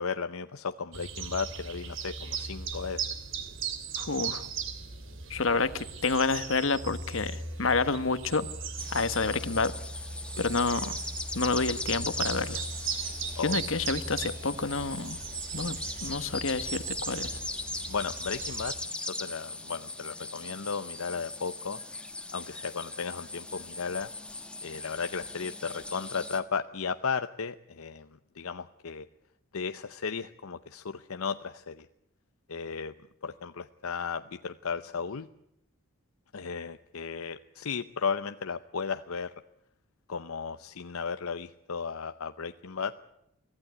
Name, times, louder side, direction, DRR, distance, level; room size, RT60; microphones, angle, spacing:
voice 1, 0.0-3.1 9.3-9.4 10.4-10.5 13.4-13.6 17.9-18.7 19.1-21.8 22.3-24.1 24.6-28.1 28.4-29.1 29.5-31.9 32.5-32.9 33.2-35.3 36.3-39.3 40.1-42.9, left 5 dB, 85° left, 9 dB, 0.8 m, -35 dB
sound 1, 0.9-18.8, right 5 dB, 65° right, 2.8 m, -38 dB
voice 2, 4.0-4.5 5.3-8.5 8.9-9.7 10.4-11.0 11.3-12.6 13.4-15.2 15.5-17.3, left 4 dB, 70° left, 12 dB, 1.3 m, -29 dB
sound 2, 8.8-26.4, left 2 dB, 5° left, 1.4 m, -39 dB
24.5 x 15.5 x 9.5 m, 0.82 s
head